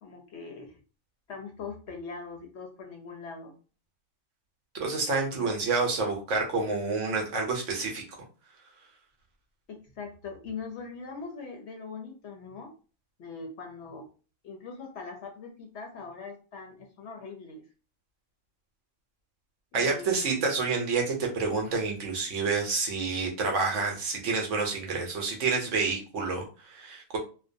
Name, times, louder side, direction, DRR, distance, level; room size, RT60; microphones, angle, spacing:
voice 1, 0.0-0.8 1.3-3.5 5.4-5.6 9.7-12.7 13.2-14.1 14.4-17.6 19.7-20.5, left 4 dB, 65° left, 3 dB, 0.8 m, -41 dB
voice 2, 4.7-8.0 19.7-27.2, right 4 dB, 70° right, 1 dB, 1.0 m, -28 dB
2.5 x 2.2 x 2.5 m, 0.36 s
omnidirectional pair, 1.4 m